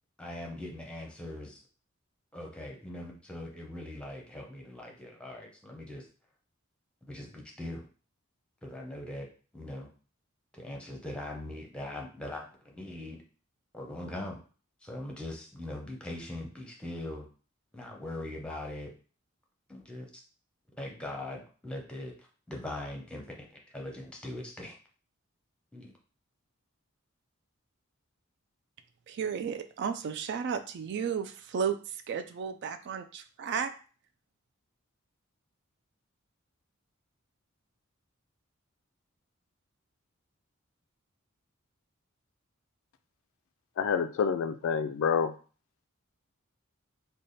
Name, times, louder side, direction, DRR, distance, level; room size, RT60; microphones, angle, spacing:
voice 1, 0.2-1.6 2.3-6.1 7.1-7.9 8.6-9.3 9.5-9.9 10.5-13.2 13.7-14.4 14.8-17.3 17.7-18.9 19.7-20.1 20.8-23.5 23.7-24.8 25.7-25.9, left 1 dB, 5° left, 0 dB, 0.7 m, -41 dB
voice 2, 29.1-33.7, right 7 dB, 55° right, 10 dB, 0.3 m, -33 dB
voice 3, 43.8-45.3, left 6 dB, 65° left, 10 dB, 0.3 m, -28 dB
3.3 x 2.2 x 4.0 m, 0.39 s
head